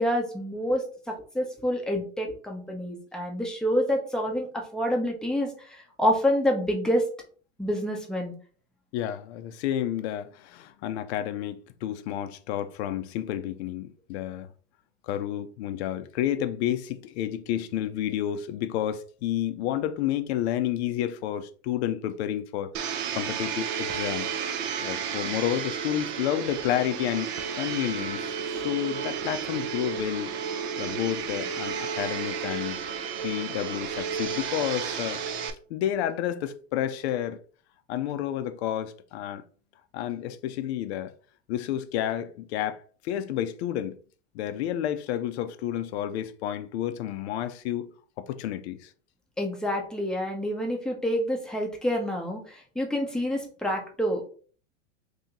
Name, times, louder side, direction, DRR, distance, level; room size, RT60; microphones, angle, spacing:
voice 1, 0.0-7.0 7.6-8.3 49.4-54.3, equal, ahead, 0.7 m, -28 dB
voice 2, 8.9-14.5 15.0-24.3 24.8-30.3 30.8-32.8 33.2-35.2 35.7-37.4 37.9-39.4 39.9-41.1 41.5-44.0 44.3-47.9 48.3-48.9, left 11 dB, 55° left, 0.6 m, -30 dB
Domestic sounds home sounds, 22.7-35.5, right 7 dB, 45° right, 0.5 m, -32 dB
2.8 x 2.8 x 3.7 m
hypercardioid pair, 115°, 39 cm